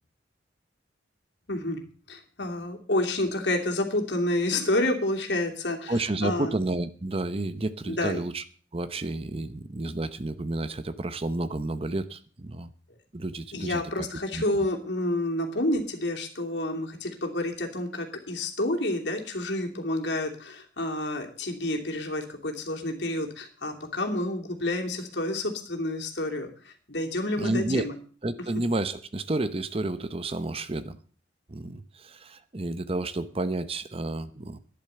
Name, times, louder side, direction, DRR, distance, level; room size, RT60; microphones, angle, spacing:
voice 1, 1.5-1.8 2.1-5.9 6.2-6.5 7.9-8.2 13.5-28.0, left 1 dB, 65° left, 2 dB, 2.8 m, -29 dB
voice 2, 5.9-8.4 8.7-12.7 13.1-13.8 14.3-14.4 27.4-27.9 28.2-31.0 31.5-34.6, right 2 dB, 30° right, 13 dB, 0.8 m, -30 dB
12.0 x 10.5 x 6.8 m, 0.42 s
head